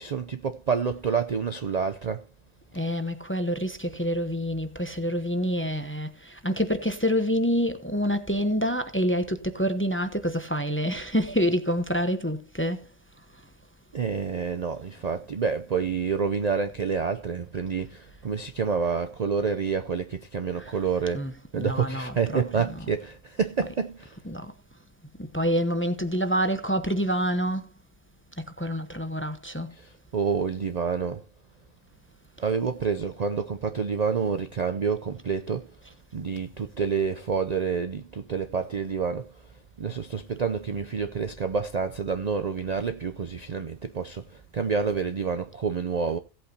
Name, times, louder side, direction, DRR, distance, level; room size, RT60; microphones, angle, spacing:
voice 1, 0.0-2.2 13.9-21.3 21.5-24.2 29.7-31.2 32.4-35.7 36.1-39.3 39.8-46.2, right 6 dB, 45° right, 0.5 m, -28 dB
voice 2, 2.7-12.9 20.6-20.8 21.1-22.8 24.2-24.5 25.2-27.7 28.4-29.7, equal, 10° left, 0.7 m, -27 dB
17.0 x 8.4 x 2.8 m
omnidirectional pair, 1.3 m